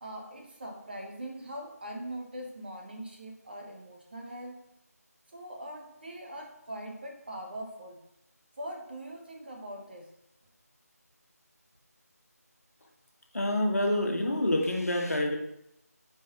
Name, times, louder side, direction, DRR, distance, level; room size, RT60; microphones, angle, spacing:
voice 1, 0.0-4.6 5.3-8.0 8.6-10.1, right 1 dB, 35° right, 1 dB, 1.0 m, -42 dB
voice 2, 13.3-15.4, left 1 dB, 65° left, 1 dB, 1.5 m, -27 dB
9.3 x 4.7 x 3.0 m, 0.80 s
figure-of-eight pair, 175°, 9 cm